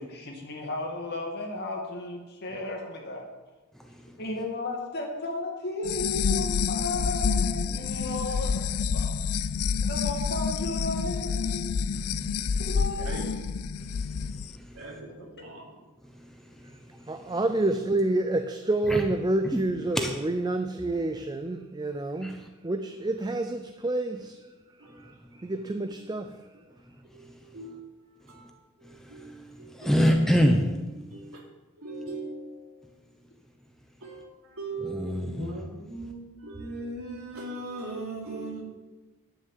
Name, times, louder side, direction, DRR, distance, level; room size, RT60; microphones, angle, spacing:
voice 1, 0.0-3.3 4.2-8.6 8.9-9.1 9.9-11.7 12.6-13.3 15.2-15.3 35.2-35.5, left 2 dB, 50° left, 2.4 m, -34 dB
voice 2, 3.8-4.2 12.1-12.6 13.9-14.8 16.1-17.4 18.9-19.1 19.4-19.6 19.9-20.1 22.2-22.5 27.3-27.4 28.8-29.4 29.7-30.7 34.8-35.6, equal, ahead, 0.9 m, -28 dB
sound 1, 5.8-14.5, left 6 dB, 80° left, 0.5 m, -28 dB
voice 3, 13.0-13.3 14.7-15.7 20.8-21.1 21.4-22.5 24.8-25.0 25.3-25.5 27.1-27.8 28.3-28.5 28.8-30.0 31.0-31.4 31.8-32.9 34.0-38.6, right 2 dB, 70° right, 3.1 m, -40 dB
voice 4, 17.1-24.4 25.0-26.4, right 2 dB, 20° right, 0.5 m, -28 dB
11.0 x 6.3 x 9.2 m
head